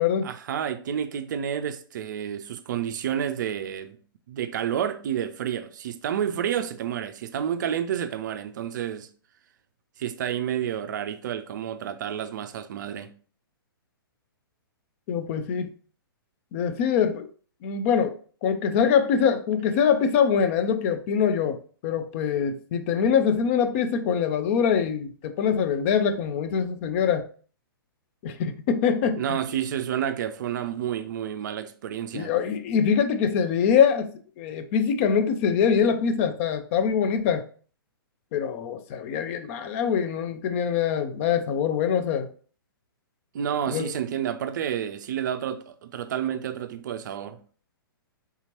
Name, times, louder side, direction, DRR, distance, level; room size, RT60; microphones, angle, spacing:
voice 1, 0.2-4.0 4.3-9.1 10.0-13.1 29.1-32.3 43.3-47.4, right 9 dB, 55° right, 0.4 m, -30 dB
voice 2, 15.1-15.7 16.5-17.3 17.6-18.1 18.4-27.2 28.2-29.2 32.1-34.1 34.4-37.4 38.3-42.3 43.7-43.9, left 7 dB, 35° left, 0.4 m, -24 dB
3.5 x 2.8 x 2.9 m
figure-of-eight pair, 120°, 12 cm